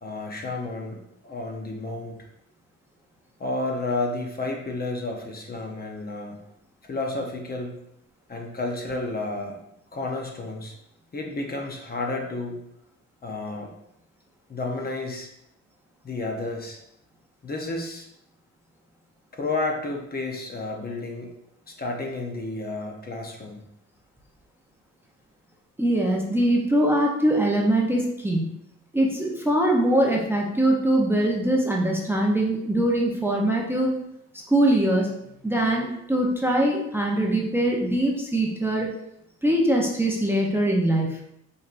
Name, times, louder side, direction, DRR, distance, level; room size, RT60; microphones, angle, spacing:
voice 1, 0.0-2.2 3.4-6.4 6.8-7.8 8.3-9.6 9.9-10.7 11.1-12.6 13.2-13.8 14.5-15.3 16.0-16.8 17.4-18.1 19.3-21.3 21.7-23.6, left 2 dB, 30° left, 1 dB, 0.8 m, -31 dB
voice 2, 25.8-28.5 28.9-33.9 34.5-35.1 35.4-38.9 39.4-41.2, right 1 dB, 5° right, -2 dB, 0.7 m, -22 dB
5.2 x 3.2 x 2.5 m, 0.78 s
cardioid pair, 90°, 30 cm